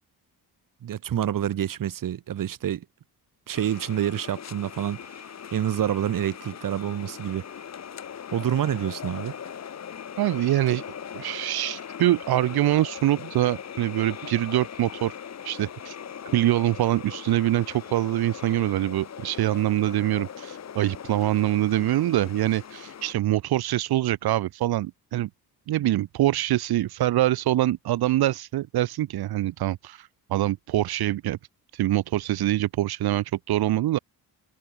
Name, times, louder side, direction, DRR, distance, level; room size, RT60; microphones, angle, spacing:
voice 1, 0.8-2.8 3.5-5.2 5.5-7.4 8.3-9.3, right 10 dB, 60° right, 3.3 m, -27 dB
sound 1, 3.5-23.1, left 8 dB, 45° left, 3.4 m, -40 dB
voice 2, 10.2-10.8 11.1-15.1 15.4-16.0 16.3-25.3 25.7-31.4 31.7-34.0, right 14 dB, 90° right, 1.7 m, -24 dB
cardioid pair, 145°, 37 cm